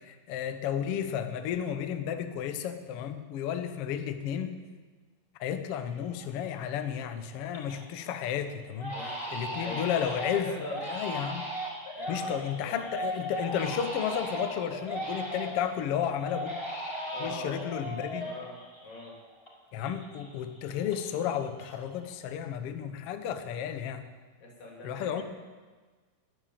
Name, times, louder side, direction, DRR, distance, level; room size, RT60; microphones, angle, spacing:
voice 1, 0.1-4.5 5.4-8.9 9.3-10.5 10.9-11.5 12.1-16.6 17.2-18.3 19.7-24.0 24.8-25.2, left 9 dB, 90° left, 8 dB, 1.2 m, -32 dB
Crying sobbing, 5.6-5.7 6.2-6.6 7.0-7.9 8.2-8.3 8.8-15.7 16.2-19.5 19.8-21.3 21.6-22.1, right 1 dB, 30° left, 4.5 m, -38 dB
voice 2, 8.9-9.9 10.3-10.8 12.0-12.3 12.6-12.8 17.1-17.6 18.2-19.2 24.4-25.2, left 2 dB, 70° left, -1 dB, 4.6 m, -41 dB
11.0 x 10.0 x 8.6 m, 1.4 s
omnidirectional pair, 4.0 m